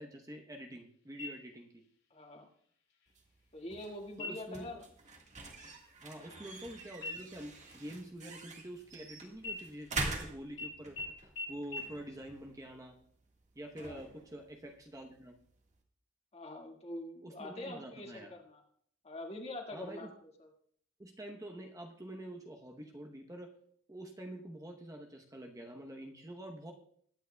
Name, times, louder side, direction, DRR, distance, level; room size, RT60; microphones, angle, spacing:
voice 1, 0.0-1.8 4.2-4.8 6.0-11.0 11.2-13.0 13.5-15.4 17.2-18.3 19.7-20.1 21.0-23.5 23.9-26.7, right 1 dB, 15° right, 2 dB, 0.9 m, -47 dB
sound 1, 1.2-1.8 2.2-2.3 2.9-3.4 4.1-4.6 5.0-5.3 5.6-6.7 7.0-9.0 9.4-10.2 10.6-10.7 11.0-11.1 11.4-11.5 11.7-11.8, left 2 dB, 70° left, 6.0 m, -45 dB
voice 2, 2.1-2.5 3.5-4.8 13.8-14.0 16.3-18.6 19.0-20.1 20.4-20.5, left 1 dB, 30° left, 1 dB, 1.9 m, -44 dB
sound 2, 3.1-15.8, right 3 dB, 35° right, 1.6 m, -46 dB
21.5 x 9.2 x 2.3 m, 0.62 s
head